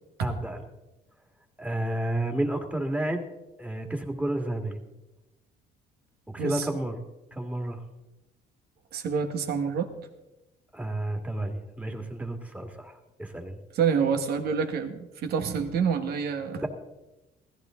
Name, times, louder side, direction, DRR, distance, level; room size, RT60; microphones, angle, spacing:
voice 1, 0.2-0.7 1.6-3.2 3.6-4.8 6.3-7.0 7.3-7.8 10.7-12.9 13.2-13.6 16.6-16.7, right 1 dB, 10° right, 5 dB, 2.2 m, -31 dB
voice 2, 8.9-9.9 13.7-16.6, right 6 dB, 70° right, 7 dB, 1.9 m, -27 dB
16.5 x 14.5 x 3.9 m, 0.99 s
cardioid pair, 110°, 17 cm